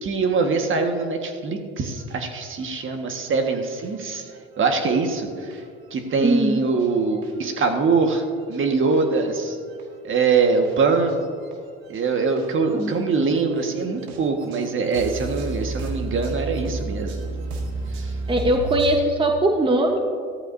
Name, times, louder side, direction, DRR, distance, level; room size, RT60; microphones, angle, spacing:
voice 1, 0.0-4.2 4.6-5.3 5.9-8.2 8.5-9.6 10.0-11.2 11.9-17.2, right 4 dB, 40° right, 4 dB, 1.7 m, -23 dB
sound 1, 1.8-19.0, right 3 dB, 85° right, 1.8 m, -34 dB
voice 2, 6.2-6.6 12.8-12.9 18.3-20.0, right 1 dB, 15° right, 3 dB, 1.1 m, -20 dB
15.5 x 13.5 x 2.7 m, 2.2 s
hypercardioid pair, 75°, 32 cm